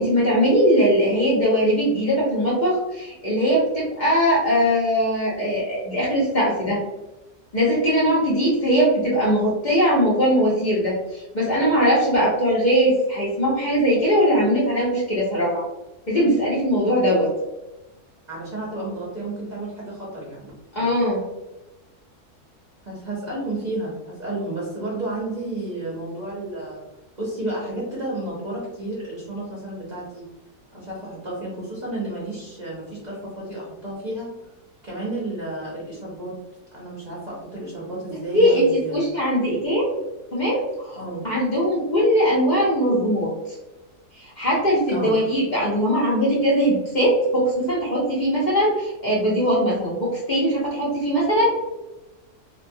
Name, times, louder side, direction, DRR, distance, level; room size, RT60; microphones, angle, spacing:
voice 1, 0.0-6.8 7.5-15.6 16.1-17.3 20.7-21.2 38.3-38.7 38.9-39.9 40.3-43.6 44.1-51.5, equal, 55° left, -6 dB, 0.5 m, -20 dB
voice 2, 18.3-20.9 22.8-26.8 27.2-30.3 30.7-34.3 34.8-36.3 36.7-39.0 41.0-41.2 44.9-45.1, right 2 dB, 40° right, -7 dB, 0.6 m, -32 dB
2.8 x 2.2 x 2.6 m, 1.0 s
omnidirectional pair, 1.7 m